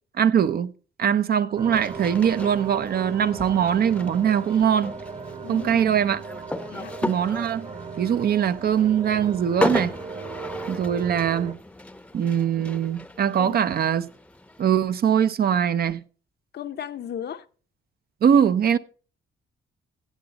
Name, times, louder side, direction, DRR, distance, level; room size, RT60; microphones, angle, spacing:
voice 1, 0.2-0.7 1.0-5.0 5.5-6.2 7.0-7.7 8.0-9.9 10.7-11.6 12.1-14.1 14.6-16.0 18.2-18.8, right 8 dB, 50° right, 0.6 m, -22 dB
sound 1, 1.6-11.5, right 5 dB, 35° right, 1.2 m, -37 dB
sound 2, 1.7-14.6, left 1 dB, 5° left, 0.7 m, -35 dB
voice 2, 5.4-6.0 6.7-6.9 13.4-13.6 16.5-17.5, left 9 dB, 55° left, 0.7 m, -35 dB
16.0 x 6.9 x 4.0 m
cardioid pair, 90°, 20 cm